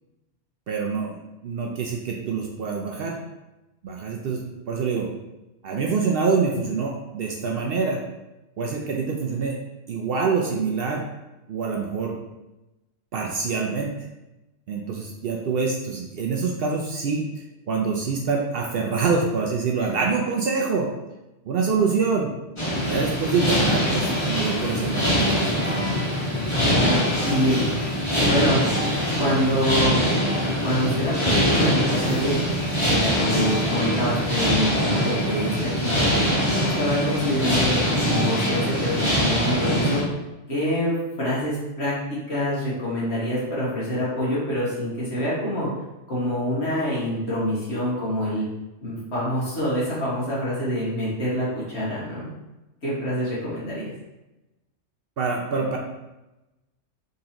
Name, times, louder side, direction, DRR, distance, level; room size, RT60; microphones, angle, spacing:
voice 1, 0.7-3.2 3.8-4.4 4.7-5.1 5.6-8.0 8.6-9.6 9.9-11.0 11.5-12.2 13.1-13.9 14.7-17.3 17.7-20.9 21.5-22.3 22.9-25.8 55.2-55.8, right 5 dB, 65° right, 0 dB, 0.7 m, -25 dB
sound 1, 22.6-40.0, equal, 25° left, 1.3 m, -23 dB
voice 2, 26.7-27.6 28.2-28.6 29.2-30.0 30.6-32.4 32.8-36.3 36.8-40.0 40.5-45.7 46.1-48.4 48.8-52.3 52.8-53.9, equal, 60° left, -8 dB, 1.9 m, -26 dB
4.0 x 3.8 x 2.8 m, 1.0 s
omnidirectional pair, 1.2 m